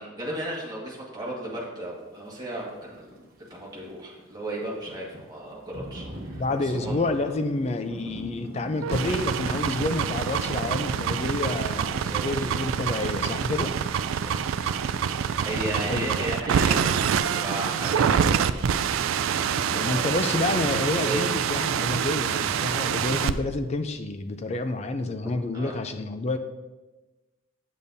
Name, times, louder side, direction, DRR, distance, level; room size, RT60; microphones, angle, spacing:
voice 1, 0.0-7.3 11.9-12.5 14.1-14.6 15.4-18.4 19.4-20.2 21.0-21.5 25.5-25.8, right 1 dB, 20° right, -4 dB, 1.6 m, -35 dB
Thunder / Rain, 2.4-20.5, equal, 45° right, 1.1 m, -46 dB
voice 2, 6.4-13.7 15.5-16.2 19.5-26.4, left 2 dB, 30° left, 8 dB, 0.4 m, -29 dB
sound 1, 8.8-23.3, right 7 dB, 75° right, 0.3 m, -26 dB
8.3 x 7.0 x 2.6 m, 1.2 s
head